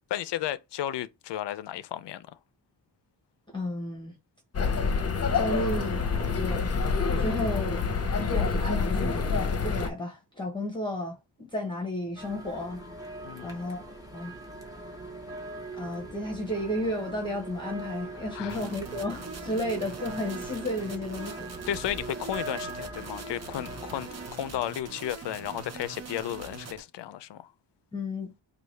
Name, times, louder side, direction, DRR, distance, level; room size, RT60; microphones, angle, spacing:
voice 1, 0.1-2.4 13.2-13.7 18.3-18.7 21.7-27.5, left 11 dB, 75° left, 0.5 m, -34 dB
voice 2, 3.5-4.2 5.3-6.0 6.3-6.7 7.1-7.9 8.3-12.8 13.4-14.3 15.7-21.5 27.9-28.3, left 1 dB, 10° left, 1.0 m, -33 dB
sound 1, 4.5-9.9, left 5 dB, 35° left, 0.8 m, -27 dB
sound 2, 12.2-24.3, right 2 dB, 10° right, 1.2 m, -41 dB
sound 3, 18.5-26.8, right 4 dB, 40° right, 0.7 m, -43 dB
4.6 x 2.4 x 3.2 m
wide cardioid pair, 110°, 42 cm